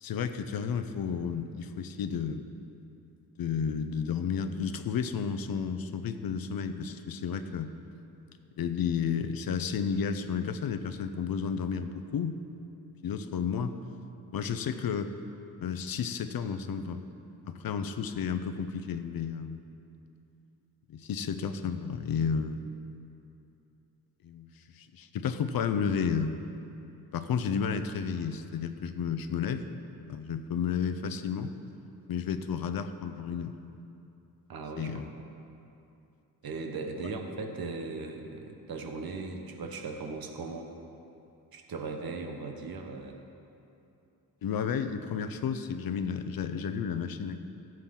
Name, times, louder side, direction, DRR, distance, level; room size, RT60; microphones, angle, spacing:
voice 1, 0.0-2.5 3.4-7.7 8.6-12.4 13.0-13.7 14.3-15.1 15.6-17.0 17.5-19.6 20.9-22.7 24.2-26.4 27.1-29.8 30.1-31.5 32.1-33.5 34.8-35.1 44.4-47.4, left 6 dB, 65° left, 10 dB, 0.6 m, -32 dB
voice 2, 34.5-34.9 36.4-40.7 41.5-43.2, right 3 dB, 70° right, 3 dB, 1.2 m, -38 dB
15.5 x 7.6 x 3.8 m, 2.8 s
wide cardioid pair, 140°, 37 cm